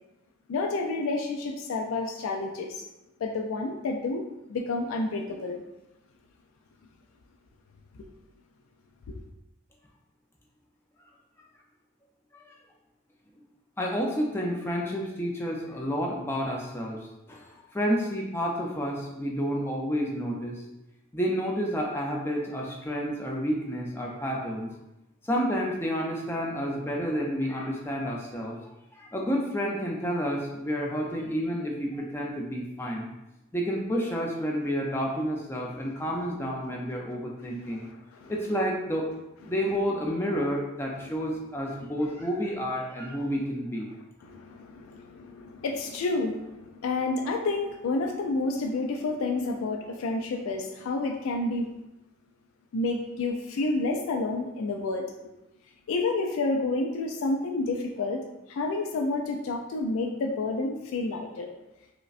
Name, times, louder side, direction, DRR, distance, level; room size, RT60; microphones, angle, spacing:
voice 1, 0.5-2.8 3.2-4.2 4.5-5.6 9.1-9.2 37.7-38.3 41.0-41.1 44.2-51.7 52.7-55.0 55.9-58.2 58.5-61.5, left 3 dB, 80° left, 2 dB, 0.3 m, -30 dB
voice 2, 13.8-20.6 21.1-24.7 25.2-28.6 28.9-33.1 33.5-37.9 38.3-39.1 39.5-43.9, equal, 10° left, -2 dB, 0.4 m, -30 dB
4.9 x 2.1 x 2.4 m, 0.92 s
head